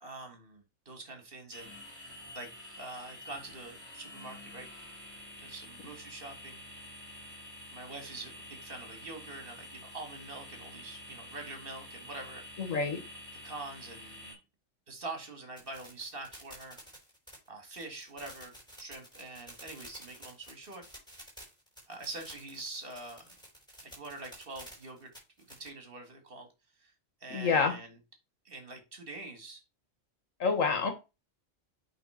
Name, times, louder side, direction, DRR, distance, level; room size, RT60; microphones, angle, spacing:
voice 1, 0.0-4.7 5.4-6.6 7.7-12.8 13.4-14.4 14.9-16.8 17.5-20.9 21.9-23.3 23.8-26.5 26.8-26.9 27.2-28.0 28.5-29.6, right 2 dB, 45° right, 5 dB, 2.2 m, -45 dB
sound 1, 1.5-14.3, left 1 dB, 25° left, 3.7 m, -48 dB
voice 2, 12.6-13.0 27.3-27.7 30.4-30.9, left 5 dB, 90° left, 7 dB, 1.9 m, -27 dB
sound 2, 15.6-25.7, equal, 5° left, 5.5 m, -51 dB
8.5 x 4.0 x 5.7 m, 0.27 s
omnidirectional pair, 1.3 m